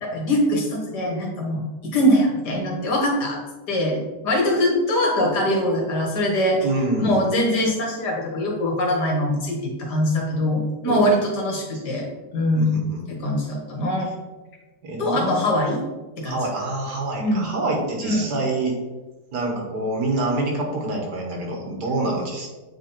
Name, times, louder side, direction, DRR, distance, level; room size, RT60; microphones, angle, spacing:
voice 1, 0.0-3.4 3.7-6.7 7.0-12.1 12.3-14.1 15.0-15.8 16.2-16.4 17.2-17.5 18.0-18.3, equal, 60° left, -1 dB, 2.0 m, -22 dB
voice 2, 6.6-7.2 10.9-11.0 12.5-13.0 14.8-15.4 16.2-18.8 19.3-22.5, right 2 dB, 65° right, 0 dB, 1.8 m, -26 dB
8.3 x 3.6 x 4.3 m, 1.2 s
omnidirectional pair, 2.0 m